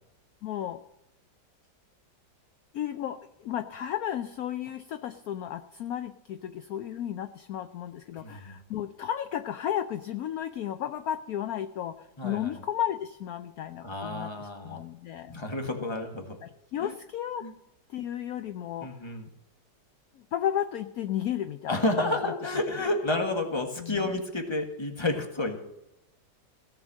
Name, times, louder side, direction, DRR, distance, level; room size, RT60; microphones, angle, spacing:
voice 1, 0.4-0.8 2.7-15.3 16.4-17.5 17.9-18.9 20.2-22.5 23.8-24.0, left 10 dB, 65° left, 10 dB, 1.0 m, -33 dB
voice 2, 8.1-8.6 12.2-12.6 13.8-14.8 15.3-16.4 16.8-16.9 17.4-17.5 18.8-19.3 21.7-25.6, left 2 dB, 15° left, 3 dB, 1.6 m, -30 dB
17.0 x 6.3 x 7.5 m, 0.87 s
omnidirectional pair, 1.9 m